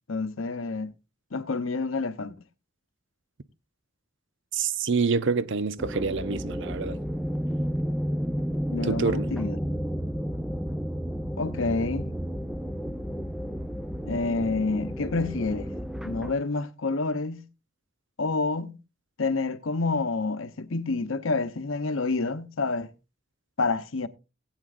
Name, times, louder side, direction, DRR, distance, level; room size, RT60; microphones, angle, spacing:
voice 1, 0.1-0.9 1.3-2.3 8.7-9.6 11.4-12.2 14.0-15.7 16.0-17.5 18.2-18.8 19.2-22.9 23.6-24.1, left 3 dB, 75° left, 0.9 m, -28 dB
voice 2, 4.5-7.0 8.8-9.3, right 4 dB, 65° right, 0.7 m, -27 dB
sound 1, 5.8-16.3, equal, ahead, 0.5 m, -32 dB
19.0 x 8.9 x 2.5 m
head